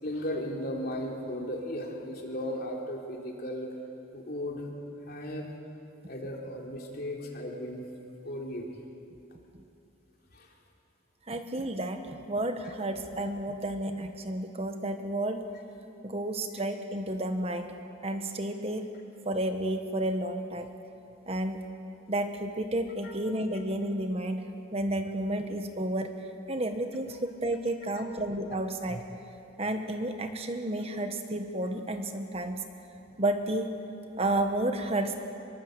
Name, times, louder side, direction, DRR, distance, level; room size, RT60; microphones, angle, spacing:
voice 1, 0.0-3.7 4.1-4.7 5.1-5.5 6.1-7.8 8.2-8.7 10.3-10.5 23.0-23.1, equal, 50° left, -1 dB, 3.7 m, -36 dB
voice 2, 11.3-15.5 16.0-17.7 18.0-18.9 19.2-20.7 21.3-21.7 22.1-26.1 26.5-29.2 29.6-32.6 33.2-33.7 34.2-35.2, right 1 dB, 30° right, 6 dB, 1.2 m, -31 dB
24.5 x 23.0 x 8.1 m, 2.7 s
head